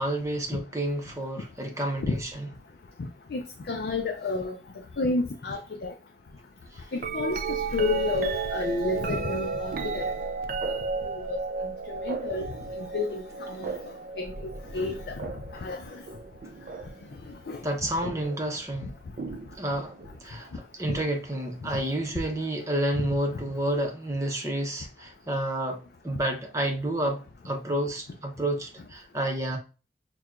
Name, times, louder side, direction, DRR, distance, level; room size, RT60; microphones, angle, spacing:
voice 1, 0.0-2.5 6.8-6.9 17.6-18.9 19.6-29.6, right 1 dB, 15° right, 0.7 m, -30 dB
voice 2, 3.7-4.5 5.0-5.9 7.1-10.1 10.7-10.8 11.2-11.4 11.9-12.5 12.8-13.7 14.2-15.1 15.5-16.0 17.5-17.6, left 3 dB, 60° left, 0.4 m, -30 dB
sound 1, 7.0-17.1 18.0-18.4 19.2-20.2 22.0-22.1, right 4 dB, 50° right, 0.4 m, -33 dB
5.9 x 2.2 x 2.4 m
head